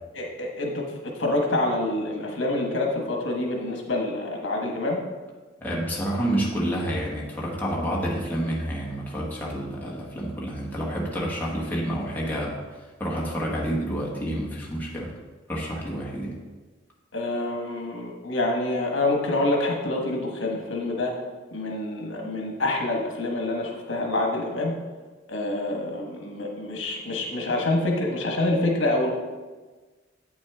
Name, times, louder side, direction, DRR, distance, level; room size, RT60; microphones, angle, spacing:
voice 1, 0.1-5.0 17.1-21.1 21.5-24.7 25.3-29.1, left 2 dB, 75° left, 0 dB, 1.3 m, -27 dB
voice 2, 5.6-15.1 15.5-16.4, equal, 10° left, -4 dB, 1.3 m, -29 dB
8.5 x 6.1 x 3.6 m, 1.3 s
head